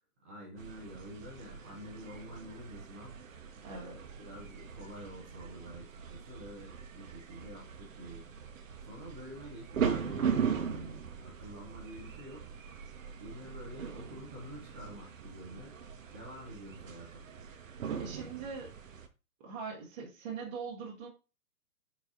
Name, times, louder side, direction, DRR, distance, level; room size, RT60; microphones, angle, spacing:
voice 1, 0.2-3.2 3.7-8.3 8.8-12.5 13.2-15.8 16.1-17.2, equal, 10° right, -3 dB, 0.4 m, -48 dB
sound 1, 0.6-19.1, right 7 dB, 55° right, 0.8 m, -40 dB
voice 2, 3.6-4.0 18.0-18.7 19.4-21.1, right 5 dB, 25° right, -3 dB, 0.9 m, -41 dB
4.5 x 3.9 x 2.5 m, 0.30 s
figure-of-eight pair, 125°, 47 cm